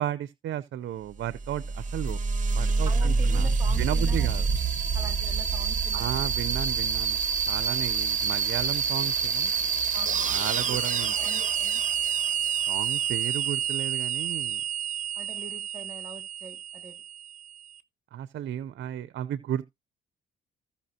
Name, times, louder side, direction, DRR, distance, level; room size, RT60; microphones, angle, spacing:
voice 1, 0.0-2.2 2.5-3.5 3.8-4.4 5.9-7.2 7.5-9.5 10.3-11.1 12.7-14.6 18.1-19.6, right 11 dB, 65° right, 0.7 m, -33 dB
sound 1, 1.3-17.6, right 6 dB, 40° right, 1.1 m, -27 dB
voice 2, 2.9-4.3 4.9-6.2 9.9-10.3 10.7-10.8 11.2-11.8 15.1-17.0, right 2 dB, 15° right, 2.7 m, -43 dB
15.5 x 5.7 x 2.8 m
cardioid pair, 90°, 20 cm